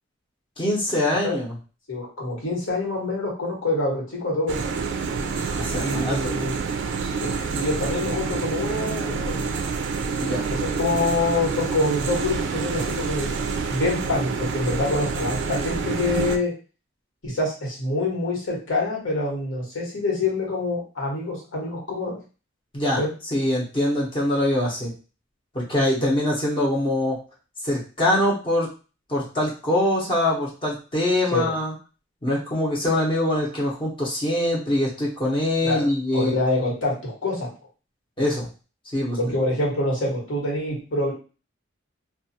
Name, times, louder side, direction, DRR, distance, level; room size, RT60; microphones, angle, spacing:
voice 1, 0.6-1.6 5.4-6.4 10.2-10.4 22.7-23.0 23.3-24.9 25.5-27.2 27.6-28.7 29.1-31.7 32.2-36.3 38.2-38.5 38.9-39.2, left 1 dB, 25° left, -5 dB, 0.7 m, -23 dB
voice 2, 1.9-4.6 5.8-6.6 7.2-9.5 10.5-13.3 13.7-16.5 17.2-22.1 23.0-23.1 26.0-26.1 31.3-31.5 35.6-35.8 36.1-37.5 39.2-41.1, left 2 dB, 75° left, -4 dB, 1.3 m, -26 dB
sound 1, 4.5-16.4, right 5 dB, 60° right, 0.3 m, -27 dB
2.3 x 2.3 x 2.7 m, 0.35 s
head